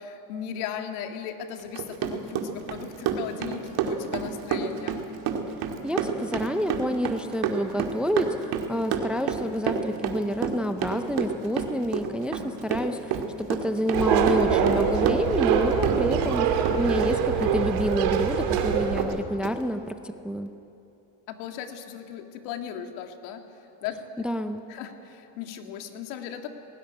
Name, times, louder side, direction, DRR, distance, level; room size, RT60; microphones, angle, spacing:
voice 1, 0.0-5.0 21.3-23.4 23.8-24.2 24.7-26.5, left 8 dB, 90° left, 5 dB, 2.1 m, -37 dB
Run, 1.6-16.4 16.6-18.2 18.6-18.7 19.0-19.1 19.4-19.5, right 7 dB, 50° right, 2.1 m, -29 dB
voice 2, 5.8-20.0 20.2-20.5 24.2-24.6, equal, ahead, 8 dB, 0.4 m, -28 dB
sound 1, 13.9-19.0, right 7 dB, 75° right, 2.9 m, -24 dB
19.5 x 18.0 x 9.9 m, 2.9 s
cardioid pair, 155°, 45 cm